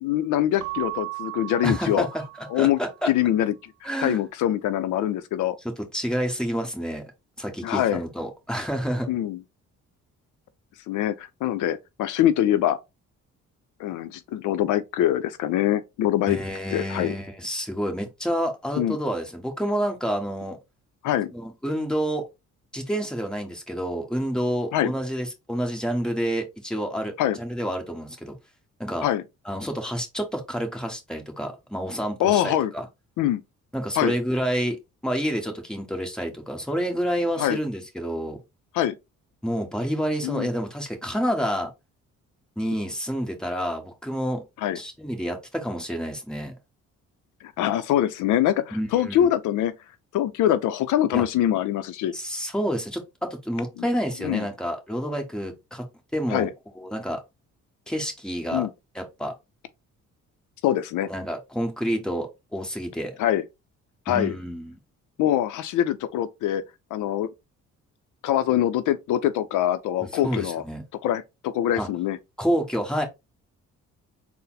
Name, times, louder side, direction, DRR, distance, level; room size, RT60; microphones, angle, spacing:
voice 1, 0.0-2.1 2.5-5.6 7.6-8.0 9.1-9.4 10.9-12.8 13.8-16.4 16.7-17.1 18.8-19.0 21.0-21.3 24.7-24.9 27.2-27.4 29.0-29.2 32.2-32.7 33.2-33.4 34.0-34.1 37.4-37.6 38.7-38.9 40.2-40.5 44.6-44.8 47.4-49.7 50.1-52.1 53.8-53.9 54.2-54.5 56.3-56.5 58.5-58.7 60.6-61.1 63.2-63.4 64.1-64.3 65.2-66.6 66.9-67.3 68.2-70.6 71.0-72.2, left 11 dB, 80° left, 0.5 m, -24 dB
Keyboard (musical) / Bell, 0.6-3.0, right 23 dB, 85° right, 0.5 m, -36 dB
voice 2, 1.6-3.1 3.8-4.2 5.9-7.1 7.4-9.1 16.3-20.6 21.3-22.2 22.7-28.3 28.8-29.0 29.4-32.8 33.7-34.8 35.0-38.4 39.4-41.7 42.6-44.4 44.7-46.5 48.7-49.3 51.1-51.2 52.1-55.8 56.1-56.5 56.7-57.2 57.9-58.7 58.9-59.3 61.1-63.2 64.1-64.8 70.2-70.8 71.8-71.9 72.4-73.0, equal, ahead, 1.3 m, -28 dB
4.0 x 2.1 x 3.9 m
cardioid pair, 90°, 30 cm